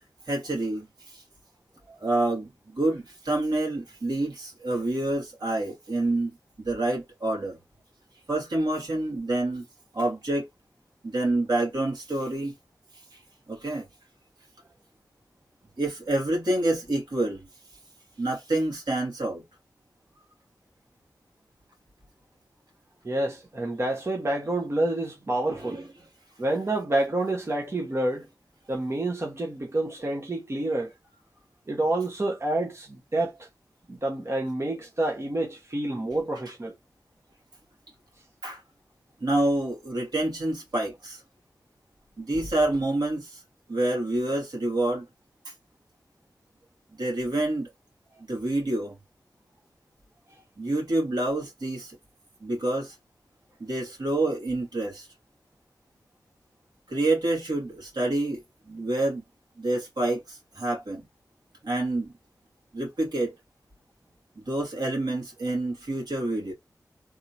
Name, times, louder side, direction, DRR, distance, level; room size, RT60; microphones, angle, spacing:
voice 1, 0.3-1.2 2.0-6.3 6.6-7.6 8.3-9.6 9.9-10.5 11.0-12.5 13.1-13.2 13.5-13.8 15.8-17.5 18.2-19.4 25.5-25.8 38.4-38.6 39.2-41.2 42.2-43.4 43.7-45.1 45.4-45.5 47.0-47.7 48.3-48.9 50.6-52.0 52.4-53.0 53.6-55.1 56.9-59.2 59.6-61.0 61.6-62.1 62.7-63.3 64.4-66.5, right 2 dB, 70° right, 2.4 m, -27 dB
voice 2, 23.0-25.8 26.4-28.3 28.7-30.9 31.7-33.5 33.9-36.7, right 2 dB, 40° right, 1.1 m, -28 dB
3.6 x 3.2 x 2.8 m
wide cardioid pair, 70°, 7 cm